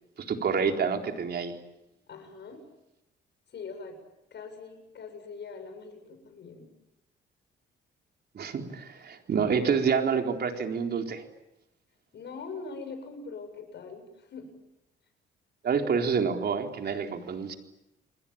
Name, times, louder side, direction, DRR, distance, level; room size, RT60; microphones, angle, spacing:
voice 1, 0.3-1.5 8.3-11.2 15.6-17.6, right 6 dB, 55° right, 4 dB, 4.2 m, -28 dB
voice 2, 2.1-2.6 3.5-4.0 4.3-6.7 12.1-14.5, left 4 dB, 60° left, 7 dB, 7.8 m, -42 dB
29.5 x 22.0 x 8.9 m, 0.89 s
cardioid pair, 90°, 20 cm